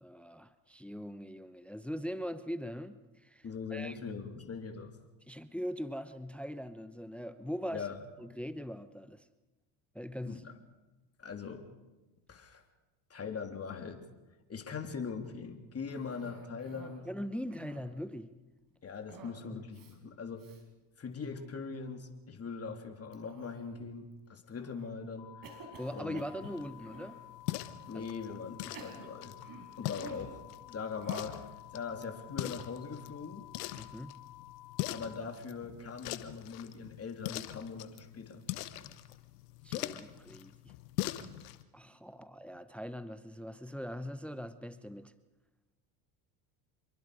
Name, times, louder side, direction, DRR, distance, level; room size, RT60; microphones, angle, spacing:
voice 1, 0.0-3.4 3.7-4.0 5.3-7.9 8.2-9.3 9.9-10.4 17.1-18.4 19.5-19.6 25.8-27.2 27.9-28.1 33.8-34.2 39.6-40.8 41.7-45.1, equal, 5° left, 0.9 m, -41 dB
voice 2, 3.4-5.0 7.7-8.0 10.2-10.5 11.2-11.6 12.3-12.6 13.1-14.0 14.5-17.1 18.8-20.5 21.0-25.5 25.9-26.2 27.9-29.4 29.8-31.4 31.7-33.5 34.9-38.4, left 5 dB, 30° left, 3.3 m, -41 dB
Cough, 15.9-17.1 17.4-18.0 19.1-19.4 19.7-19.9 20.4-20.6 21.2-21.6 23.1-23.9 24.5-24.9 25.4-27.2 27.9-28.0 28.6-30.4 31.0-31.4, right 4 dB, 45° right, 4.8 m, -51 dB
sound 1, 25.2-35.2, left 15 dB, 55° left, 2.0 m, -53 dB
sound 2, 26.4-41.6, left 16 dB, 85° left, 1.2 m, -42 dB
27.0 x 23.0 x 5.0 m
supercardioid pair, 85°, 47 cm